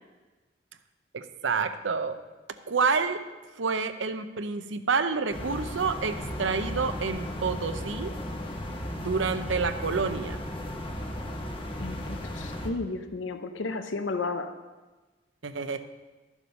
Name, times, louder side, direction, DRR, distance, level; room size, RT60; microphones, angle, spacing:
voice 1, 1.1-2.2 2.7-3.2 3.6-8.1 8.9-10.4 15.4-15.8, right 5 dB, 90° right, 10 dB, 0.7 m, -28 dB
sound 1, 5.3-12.7, left 1 dB, 30° left, 1.0 m, -35 dB
voice 2, 11.8-14.6, left 3 dB, 90° left, 8 dB, 0.7 m, -33 dB
12.5 x 7.3 x 5.3 m, 1.2 s
head